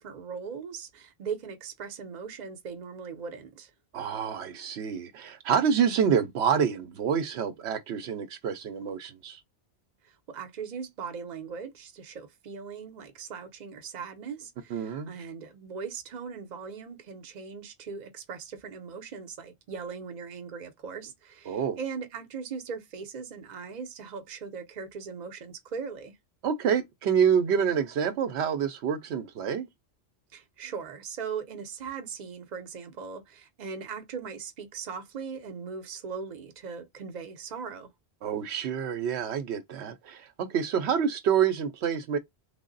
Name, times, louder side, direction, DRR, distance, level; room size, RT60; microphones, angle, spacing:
voice 1, 0.0-3.7 10.0-26.1 30.3-37.9, right 6 dB, 45° right, 0.7 m, -39 dB
voice 2, 3.9-9.4 14.7-15.1 21.5-21.8 26.4-29.7 38.2-42.2, right 7 dB, 80° right, 0.9 m, -27 dB
3.3 x 2.1 x 3.8 m
omnidirectional pair, 1.1 m